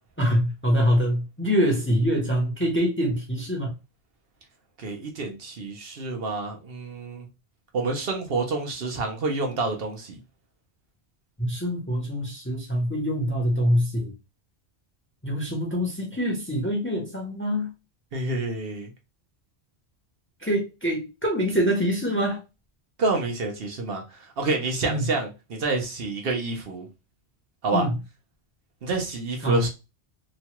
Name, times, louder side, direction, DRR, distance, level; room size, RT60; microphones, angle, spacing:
voice 1, 0.2-3.7 11.4-14.1 15.2-17.7 20.4-22.4 24.8-25.0 27.7-27.9 29.4-29.6, equal, 15° left, 0.7 m, -24 dB
voice 2, 4.8-7.3 7.7-10.2 18.1-18.9 23.0-26.9 27.6-27.9 28.8-29.7, right 3 dB, 60° right, 0.9 m, -28 dB
3.0 x 2.2 x 2.8 m
omnidirectional pair, 1.1 m